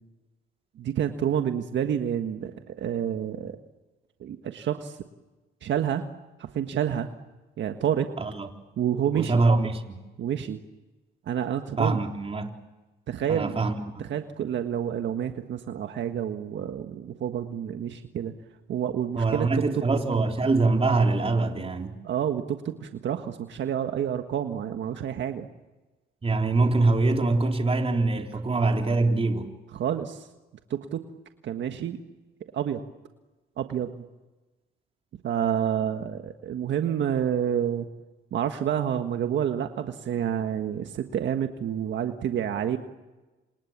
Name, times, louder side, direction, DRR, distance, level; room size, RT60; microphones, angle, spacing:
voice 1, 0.8-3.6 4.2-5.0 5.6-6.0 6.4-7.1 7.6-8.1 8.8-9.4 10.2-10.6 11.3-12.0 13.1-13.6 14.0-18.3 18.7-19.5 22.0-25.5 29.7-30.3 30.7-31.0 31.4-32.0 32.5-32.8 33.6-34.1 35.2-37.8 38.3-42.8, right 9 dB, 70° right, 1.6 m, -28 dB
voice 2, 9.1-10.0 11.8-12.5 13.3-14.0 19.1-21.9 26.2-29.5, right 3 dB, 30° right, 3.7 m, -24 dB
28.5 x 27.5 x 7.4 m
cardioid pair, 90°, 20 cm